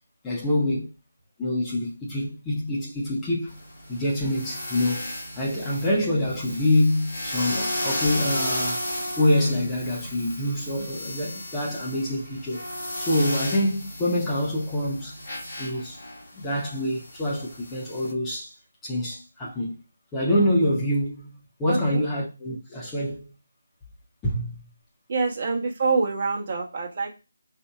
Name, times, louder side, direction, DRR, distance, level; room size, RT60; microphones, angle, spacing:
voice 1, 0.2-0.9 1.4-3.5 3.9-8.8 9.2-12.7 13.0-15.2 15.6-16.0 16.3-18.5 18.8-19.7 20.1-23.3 24.2-24.6, left 1 dB, 10° left, 0.8 m, -26 dB
sound 1, 3.5-18.1, left 1 dB, 50° left, 1.6 m, -34 dB
voice 2, 21.7-22.0 25.1-27.1, right 4 dB, 35° right, 1.2 m, -26 dB
4.4 x 2.6 x 2.4 m
figure-of-eight pair, 155°, 0 cm